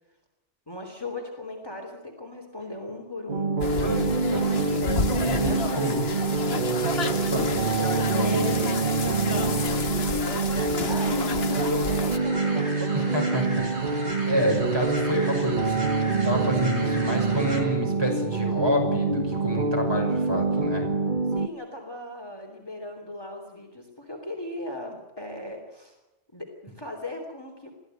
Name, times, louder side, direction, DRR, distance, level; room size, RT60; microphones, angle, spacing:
voice 1, 0.7-3.5 5.5-6.1 6.9-13.1 14.7-14.8 21.3-26.0 26.3-27.7, left 2 dB, 20° left, 2 dB, 3.0 m, -37 dB
sound 1, 3.3-21.5, right 4 dB, 45° right, 1.2 m, -26 dB
sound 2, 3.6-12.2, left 4 dB, 60° left, 1.6 m, -31 dB
voice 2, 3.8-6.0 7.0-7.5 12.9-14.0 14.3-15.8 16.1-20.9, equal, 20° right, 0 dB, 6.2 m, -29 dB
sound 3, 12.1-17.6, equal, 65° right, 4.7 m, -38 dB
23.0 x 15.0 x 9.0 m, 1.0 s
omnidirectional pair, 1.2 m